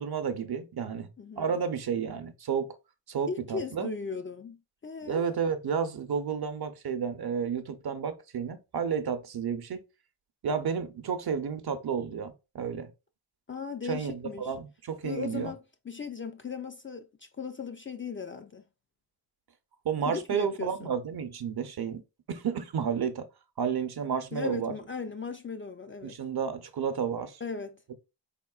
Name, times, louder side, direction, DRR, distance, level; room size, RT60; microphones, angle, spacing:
voice 1, 0.0-1.1 1.4-2.7 3.1-3.9 5.1-9.8 10.4-12.9 13.8-15.5 19.8-22.0 22.3-23.3 23.6-24.7 26.0-27.4, right 6 dB, 60° right, 0.6 m, -31 dB
voice 2, 1.2-1.6 3.3-5.2 13.5-14.5 15.0-15.6 15.9-17.1 17.4-18.6 20.1-20.9 24.3-26.2 27.4-27.8, left 5 dB, 30° left, 0.3 m, -37 dB
4.2 x 3.6 x 2.3 m
wide cardioid pair, 85°, 43 cm